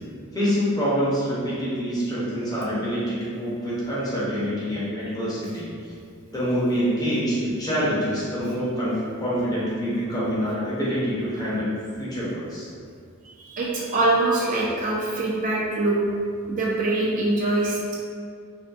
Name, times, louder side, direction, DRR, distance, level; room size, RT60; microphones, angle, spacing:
voice 1, 0.3-5.7 6.3-12.7, equal, 15° left, -8 dB, 0.6 m, -26 dB
voice 2, 13.3-16.0 16.5-17.9, right 2 dB, 35° right, -4 dB, 0.3 m, -24 dB
2.4 x 2.4 x 2.4 m, 2.2 s
head